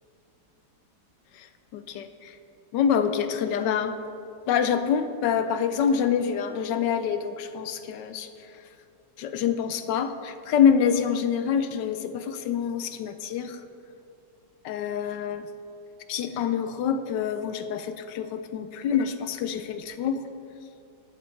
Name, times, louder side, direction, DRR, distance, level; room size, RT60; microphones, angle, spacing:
voice 1, 1.7-2.4 2.7-4.0 4.5-8.3 9.2-13.6 14.6-15.5 16.1-20.2, left 7 dB, 75° left, 9 dB, 1.1 m, -26 dB
14.0 x 8.4 x 3.2 m, 2.8 s
omnidirectional pair, 2.1 m